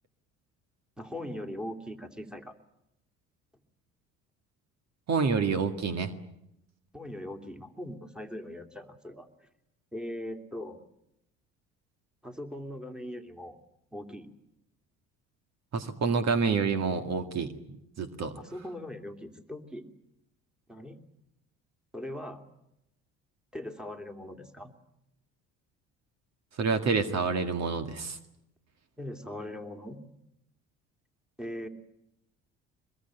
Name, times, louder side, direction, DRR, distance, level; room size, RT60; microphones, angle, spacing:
voice 1, 1.0-2.5 6.9-9.3 9.9-10.8 12.2-13.6 13.9-14.3 18.3-19.8 20.7-21.0 21.9-22.4 23.5-24.7 29.0-30.1 31.4-31.7, left 1 dB, ahead, 6 dB, 2.8 m, -40 dB
voice 2, 5.1-6.1 15.7-17.5 18.0-18.3 26.6-28.2, right 5 dB, 50° right, 8 dB, 2.0 m, -28 dB
23.0 x 22.0 x 9.0 m, 0.83 s
hypercardioid pair, 65°, 33 cm